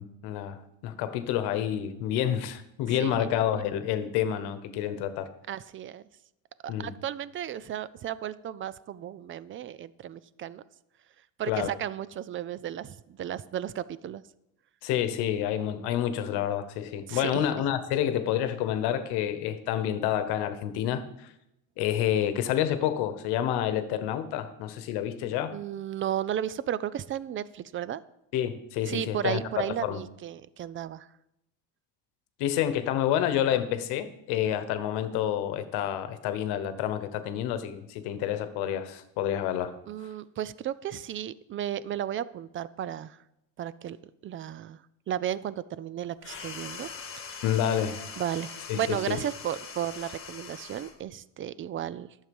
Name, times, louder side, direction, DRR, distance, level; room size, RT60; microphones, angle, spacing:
voice 1, 0.0-5.3 6.7-6.9 11.5-11.7 14.8-21.3 21.8-25.6 28.3-29.4 29.8-30.0 32.4-39.7 47.4-48.0 48.7-49.2, left 10 dB, 85° left, 12 dB, 1.1 m, -28 dB
voice 2, 2.9-3.3 5.5-6.0 6.6-10.6 11.4-14.2 17.1-17.4 25.5-28.0 28.9-31.1 39.9-43.2 43.6-44.0 44.2-44.8 45.1-47.4 48.2-52.1, right 10 dB, 35° right, 18 dB, 0.4 m, -34 dB
sound 1, 46.2-51.0, left 6 dB, 35° left, 1.7 m, -42 dB
11.5 x 7.4 x 5.3 m, 0.85 s
cardioid pair, 125°, 38 cm